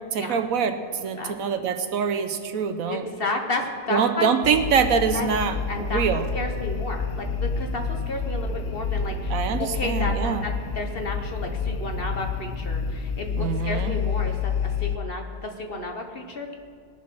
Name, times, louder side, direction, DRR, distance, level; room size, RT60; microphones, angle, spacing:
voice 1, 0.1-3.1 3.9-6.3 9.3-10.4 13.4-14.0, right 6 dB, 65° right, 9 dB, 1.0 m, -24 dB
voice 2, 1.2-1.7 2.9-4.3 5.1-5.4 5.7-6.0 6.3-16.5, left 2 dB, 40° left, 3 dB, 1.1 m, -32 dB
sound 1, 4.4-15.0, left 5 dB, 60° left, 0.6 m, -29 dB
19.0 x 7.3 x 6.1 m, 2.2 s
omnidirectional pair, 1.6 m